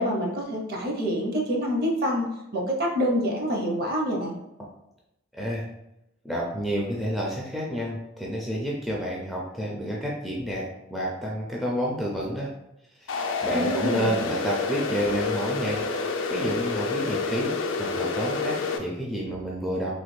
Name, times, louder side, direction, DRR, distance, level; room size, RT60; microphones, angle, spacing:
voice 1, 0.0-2.3 2.5-4.3 13.5-14.1, equal, 50° right, -1 dB, 0.7 m, -26 dB
voice 2, 5.3-5.7 6.2-12.5 13.0-15.8 16.3-20.0, equal, ahead, -4 dB, 0.4 m, -30 dB
sound 1, 13.1-18.8, left 4 dB, 65° left, 0.4 m, -28 dB
3.2 x 2.2 x 3.1 m, 0.87 s
head